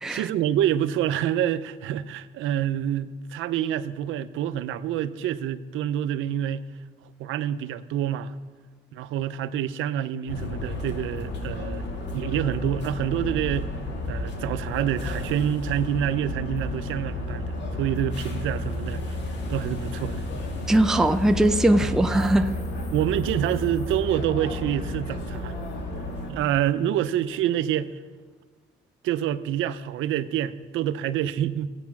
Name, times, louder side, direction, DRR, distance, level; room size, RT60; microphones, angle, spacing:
voice 1, 0.1-6.7 7.2-8.3 8.9-11.8 12.1-13.7 14.1-19.0 19.5-20.2 21.8-22.0 22.9-25.5 26.3-28.0 29.0-31.7, right 10 dB, 85° right, 0.6 m, -27 dB
sound 1, 10.3-26.3, left 1 dB, 60° left, 2.3 m, -32 dB
voice 2, 20.7-22.5, right 1 dB, ahead, 0.5 m, -20 dB
16.0 x 8.4 x 5.9 m
cardioid pair, 90°, 20 cm